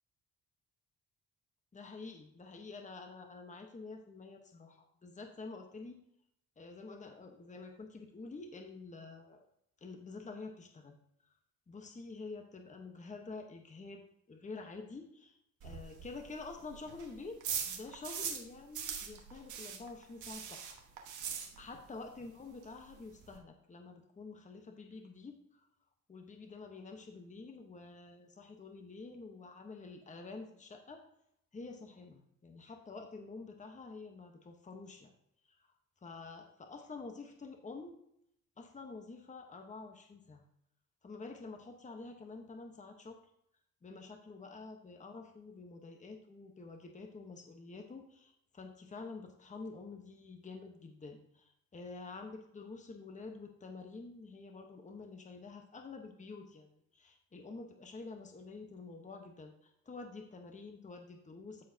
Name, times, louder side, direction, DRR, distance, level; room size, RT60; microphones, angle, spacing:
voice 1, 1.7-6.0 6.6-9.4 9.8-10.9 11.7-14.0 14.3-15.4 15.6-17.4 17.7-20.8 21.6-25.4 26.1-31.0 31.5-35.1 35.5-35.6 36.0-38.0 38.6-40.4 41.0-43.2 43.8-61.6, left 3 dB, 25° left, 3 dB, 1.1 m, -48 dB
sound 1, 15.6-18.5 18.7-22.0 22.2-22.3 22.6-22.7 22.9-23.4, right 7 dB, 80° right, 1.5 m, -41 dB
14.0 x 4.6 x 2.8 m, 0.74 s
cardioid pair, 90°, 30 cm